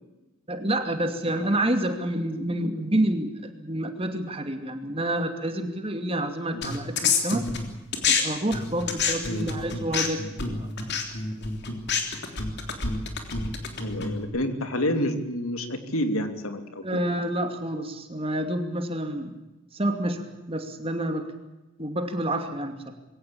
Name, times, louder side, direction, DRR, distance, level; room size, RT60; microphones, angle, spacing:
voice 1, 0.5-7.5 8.1-10.7 16.8-19.3 19.7-21.3 21.8-22.9, right 1 dB, 25° right, 6 dB, 2.5 m, -28 dB
sound 1, 6.6-8.2 8.5-14.3, left 5 dB, 50° left, 3.4 m, -27 dB
voice 2, 13.8-16.8, left 1 dB, 90° left, 7 dB, 2.8 m, -29 dB
22.0 x 17.5 x 8.6 m, 1.0 s
head